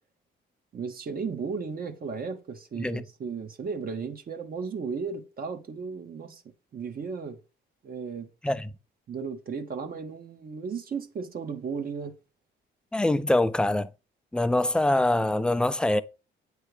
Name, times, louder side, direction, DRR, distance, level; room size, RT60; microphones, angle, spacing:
voice 1, 0.7-6.4 6.7-7.4 7.8-8.3 9.1-12.2, right 5 dB, 50° right, 0.9 m, -35 dB
voice 2, 12.9-13.9 14.3-16.0, left 1 dB, 5° left, 0.4 m, -24 dB
7.9 x 3.3 x 4.8 m
cardioid pair, 90°, 20 cm